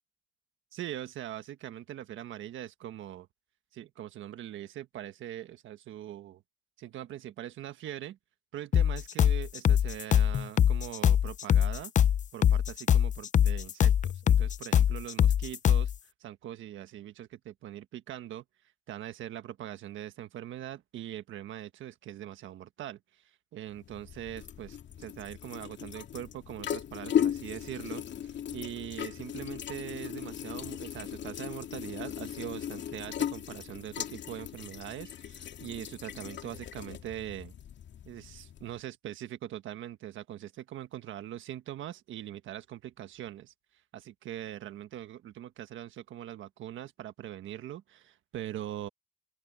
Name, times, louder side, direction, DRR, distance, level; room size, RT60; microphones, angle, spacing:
voice 1, 0.7-3.3 3.7-6.4 6.8-8.2 8.5-11.9 12.3-15.9 16.2-18.4 18.9-37.5 38.0-43.5 43.9-48.9, right 12 dB, 75° right, 1.4 m, -42 dB
sound 1, 8.7-15.9, left 9 dB, 40° left, 0.4 m, -23 dB
sound 2, 23.7-38.8, left 9 dB, 65° left, 2.5 m, -37 dB
open air
cardioid pair, 90°, 20 cm